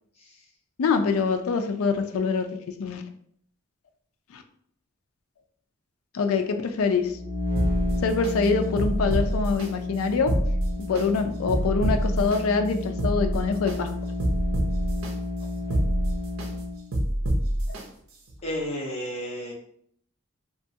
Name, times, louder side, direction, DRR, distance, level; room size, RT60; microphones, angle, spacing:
voice 1, 0.8-2.5 2.8-3.0 4.3-4.4 6.1-7.1 8.0-10.3 10.9-13.9 15.7-15.8, left 4 dB, 85° left, 6 dB, 0.4 m, -24 dB
sound 1, 7.0-16.9, left 2 dB, 50° right, 1.4 m, -32 dB
sound 2, 7.6-8.3 8.8-9.7 10.1-11.0 11.5-12.4 12.8-13.8 14.2-15.1 15.6-16.5 16.9-17.8 18.3-18.4, right 1 dB, 90° right, 0.6 m, -26 dB
voice 2, 18.4-19.5, equal, 30° left, -4 dB, 0.8 m, -32 dB
3.0 x 2.3 x 2.7 m, 0.65 s
head